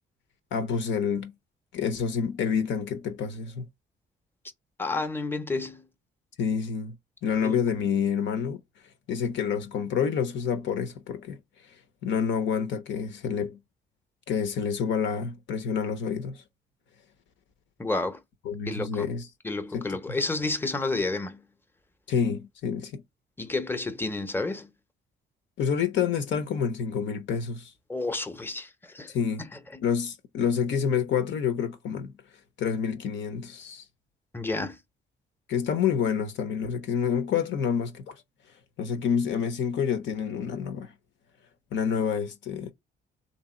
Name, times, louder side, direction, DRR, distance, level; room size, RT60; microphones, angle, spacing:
voice 1, 0.5-1.3 1.7-3.6 6.4-7.0 7.2-8.6 9.1-11.4 12.0-13.6 14.3-16.4 18.4-19.3 19.7-20.0 22.1-23.0 25.6-27.7 29.1-29.4 29.8-32.1 32.6-33.8 35.5-38.2 38.8-40.9 41.7-42.7, left 7 dB, 70° left, 0.8 m, -28 dB
voice 2, 4.8-5.8 7.4-7.6 17.8-18.2 18.7-19.1 19.4-21.4 23.4-24.7 27.9-29.1 29.4-29.8 34.3-34.8, left 3 dB, 10° left, 0.7 m, -30 dB
3.3 x 2.8 x 4.3 m
cardioid pair, 90°, 20 cm